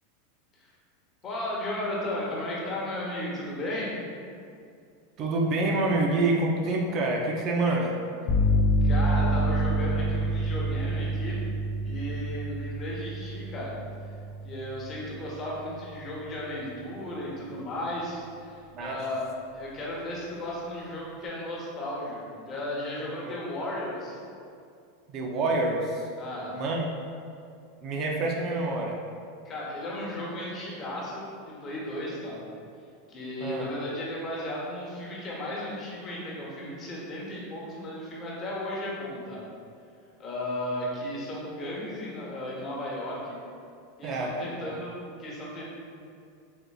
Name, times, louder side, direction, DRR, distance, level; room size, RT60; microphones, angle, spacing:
voice 1, 1.2-3.9 8.8-11.4 11.8-13.7 14.4-19.2 19.5-24.2 26.2-26.6 29.4-32.4 33.1-39.4 40.2-43.4 44.0-45.6, left 1 dB, 35° left, -5 dB, 1.0 m, -35 dB
voice 2, 5.2-7.9 18.7-18.9 23.2-23.3 25.1-26.1 26.5-26.9 27.8-29.0 33.4-33.7 44.0-44.8, right 2 dB, 45° right, -1 dB, 0.4 m, -27 dB
sound 1, 8.3-16.0, right 1 dB, 50° left, 0.4 m, -27 dB
4.4 x 2.5 x 2.3 m, 2.4 s
hypercardioid pair, 110°, 0 cm